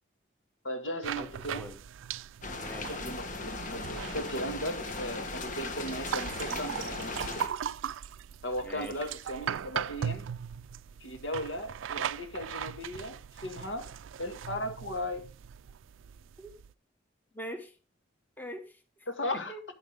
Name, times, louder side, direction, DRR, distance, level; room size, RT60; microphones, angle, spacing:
voice 1, 0.6-1.7 2.9-7.4 8.4-10.3 11.0-13.9 14.2-15.2 19.1-19.6, equal, 70° left, 1.9 m, -37 dB
sound 1, 1.0-16.7, right 8 dB, 90° right, 0.4 m, -39 dB
sound 2, 2.4-7.5, left 3 dB, 40° left, 1.4 m, -38 dB
voice 2, 2.6-3.0 8.6-9.1 16.4-16.5 17.3-17.8 18.4-19.1 19.3-19.6, equal, 10° left, 1.3 m, -43 dB
9.8 x 9.0 x 3.5 m
head